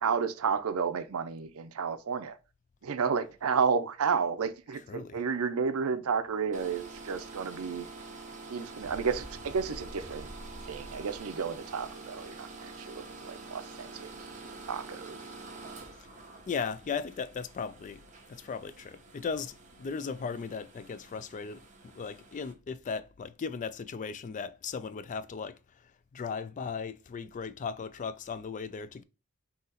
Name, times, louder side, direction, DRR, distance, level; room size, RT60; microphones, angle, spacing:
voice 1, 0.0-2.4 2.8-7.9 8.5-10.3 10.7-14.1 14.7-15.2, right 6 dB, 75° right, 0.5 m, -31 dB
voice 2, 4.7-5.2 15.9-16.1 16.5-18.0 18.3-29.0, left 5 dB, 35° left, 0.3 m, -37 dB
sound 1, 6.5-22.5, right 3 dB, 35° right, 0.9 m, -47 dB
sound 2, 8.8-12.4, equal, 20° left, 0.9 m, -48 dB
3.9 x 2.9 x 3.9 m
head